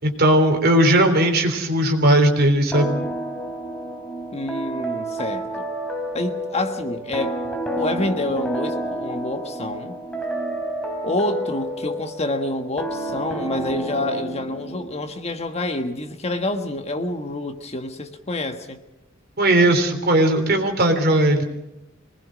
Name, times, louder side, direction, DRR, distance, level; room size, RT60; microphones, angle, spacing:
voice 1, 0.0-3.0 19.4-21.4, right 1 dB, 50° right, 3.5 m, -17 dB
sound 1, 2.7-15.1, right 1 dB, 5° left, 2.9 m, -30 dB
voice 2, 4.3-5.6 6.1-7.4 7.8-9.9 11.0-18.8, left 1 dB, 30° left, 1.5 m, -27 dB
25.5 x 20.0 x 6.3 m
head